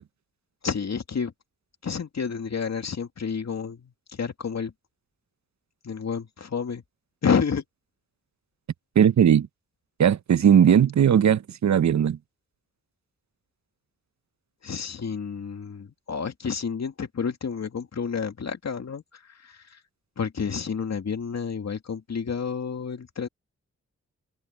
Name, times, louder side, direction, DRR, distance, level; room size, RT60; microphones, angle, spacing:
voice 1, 0.6-1.3 1.8-4.7 5.8-6.8 7.2-7.6 14.6-19.8 20.2-23.3, left 6 dB, 65° left, 2.4 m, -30 dB
voice 2, 9.0-9.5 10.0-12.2, right 8 dB, 70° right, 0.9 m, -18 dB
cardioid pair, 45°, 29 cm